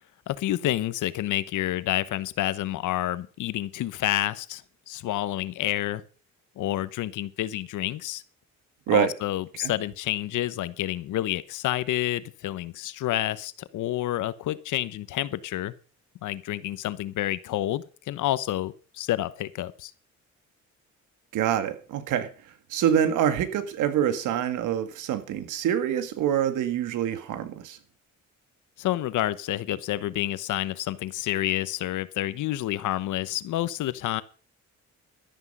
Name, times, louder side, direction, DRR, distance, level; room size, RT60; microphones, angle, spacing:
voice 1, 0.3-4.6 4.9-6.0 6.6-8.2 8.9-15.7 16.2-19.9 28.8-34.2, left 14 dB, 80° left, 1.0 m, -29 dB
voice 2, 21.3-22.3 22.7-27.8, right 9 dB, 90° right, 1.8 m, -25 dB
12.5 x 11.0 x 5.4 m
cardioid pair, 90°, 30 cm